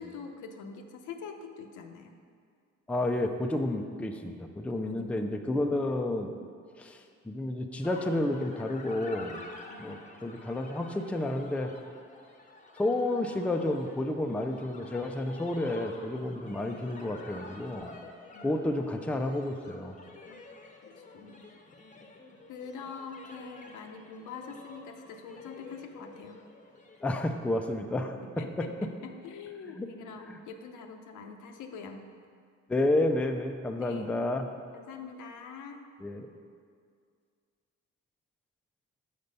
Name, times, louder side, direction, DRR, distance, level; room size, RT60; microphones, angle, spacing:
voice 1, 0.0-2.2 4.8-5.3 9.7-10.2 18.3-18.5 20.3-20.4 20.8-21.5 22.5-26.4 28.2-32.0 33.8-34.2 34.7-35.9, left 5 dB, 80° left, 5 dB, 0.7 m, -44 dB
voice 2, 2.9-6.3 6.8-9.4 9.8-11.7 12.8-17.9 18.4-20.0 27.0-28.9 29.8-29.9 30.3-30.4 32.7-34.5 36.0-36.3, left 1 dB, 5° left, 5 dB, 0.4 m, -31 dB
sound 1, 7.8-27.3, left 2 dB, 25° left, 0.8 m, -50 dB
6.6 x 4.4 x 5.3 m, 2.1 s
cardioid pair, 90°, 30 cm